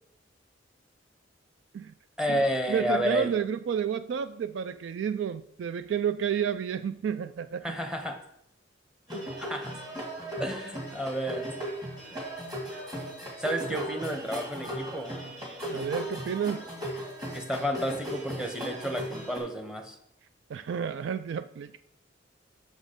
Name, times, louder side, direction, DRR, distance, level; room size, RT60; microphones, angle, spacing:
voice 1, 2.2-3.3 7.6-8.2 9.4-9.8 10.4-11.5 13.4-15.1 17.3-20.0, equal, 5° right, 4 dB, 0.9 m, -31 dB
voice 2, 2.7-7.6 9.1-9.2 15.7-16.7 20.5-21.8, right 8 dB, 70° right, 13 dB, 0.3 m, -30 dB
sound 1, 9.1-19.4, equal, 25° right, 1.9 m, -37 dB
6.3 x 6.2 x 5.1 m, 0.75 s
head